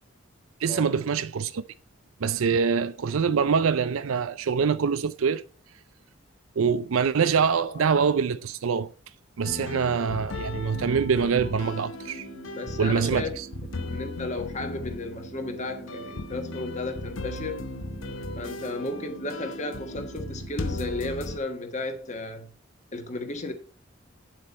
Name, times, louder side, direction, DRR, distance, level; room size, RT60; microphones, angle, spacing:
voice 1, 0.6-1.6 2.2-5.4 6.6-8.9 9.4-12.3 12.8-13.5, right 6 dB, 80° right, 0.4 m, -24 dB
sound 1, 9.4-21.4, left 2 dB, 70° left, 0.8 m, -36 dB
voice 2, 9.6-9.9 12.5-13.4 13.8-17.6 18.4-22.5 22.9-23.5, left 2 dB, 35° left, 1.4 m, -34 dB
sound 2, 10.8-20.8, right 4 dB, 65° right, 1.5 m, -46 dB
8.7 x 7.7 x 4.2 m
head